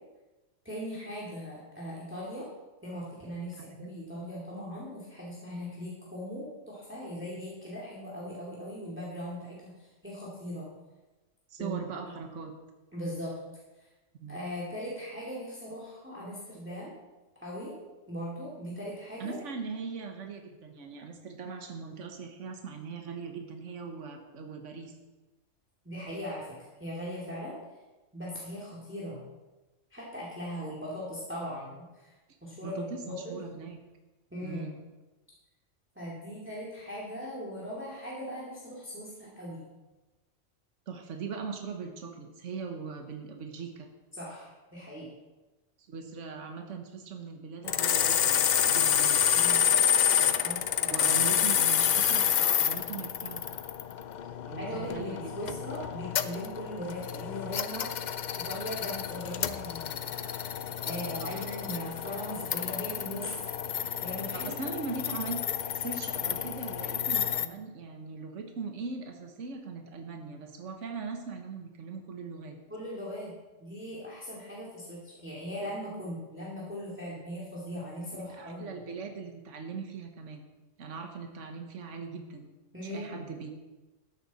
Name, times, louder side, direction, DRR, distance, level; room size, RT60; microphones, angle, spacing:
voice 1, 0.6-2.5 2.8-10.7 11.6-11.9 12.9-13.4 14.3-16.9 17.4-17.8 18.1-19.4 25.8-27.6 28.1-29.2 29.9-32.1 32.4-33.4 34.3-34.7 36.0-39.6 44.1-45.1 49.3-49.9 50.1-51.2 54.6-60.3 60.8-63.4 63.8-64.5 72.7-73.3 73.6-78.8 82.7-83.2, equal, 10° right, -5 dB, 2.4 m, -39 dB
voice 2, 11.5-12.5 14.2-14.4 19.2-24.9 32.6-33.8 34.4-34.8 40.9-43.9 45.8-49.2 50.9-53.6 54.5-55.6 61.2-61.5 64.3-65.4 65.7-72.6 78.1-80.4 80.8-82.5 82.8-83.5, right 5 dB, 70° right, 5 dB, 1.5 m, -40 dB
sound 1, 47.7-67.5, left 9 dB, 60° left, 0.4 m, -29 dB
13.5 x 10.0 x 4.2 m, 1.1 s
omnidirectional pair, 1.3 m